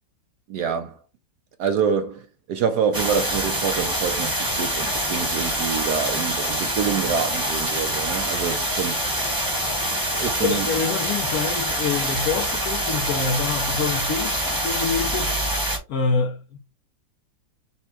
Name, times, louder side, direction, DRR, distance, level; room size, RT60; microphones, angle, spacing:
voice 1, 0.5-0.9 1.6-2.2 2.5-9.0 10.2-10.7, right 7 dB, 70° right, 1.0 m, -26 dB
sound 1, 2.9-15.8, right 1 dB, 15° right, 1.0 m, -25 dB
voice 2, 10.4-15.4 15.9-16.6, left 5 dB, 70° left, 0.9 m, -26 dB
4.3 x 2.2 x 4.2 m
omnidirectional pair, 2.0 m